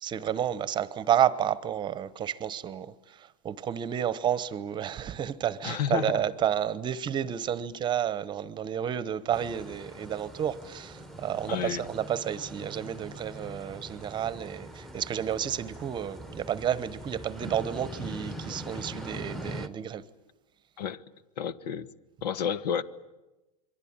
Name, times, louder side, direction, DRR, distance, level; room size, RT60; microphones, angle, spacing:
voice 1, 0.0-20.1, right 10 dB, 20° right, 1.0 m, -31 dB
voice 2, 5.6-6.2 11.5-11.8 20.8-21.0 21.4-21.9 22.2-22.8, left 8 dB, 80° left, 1.4 m, -30 dB
sound 1, 9.3-19.7, right 1 dB, ahead, 1.1 m, -42 dB
27.0 x 23.0 x 8.9 m
supercardioid pair, 140°, 21 cm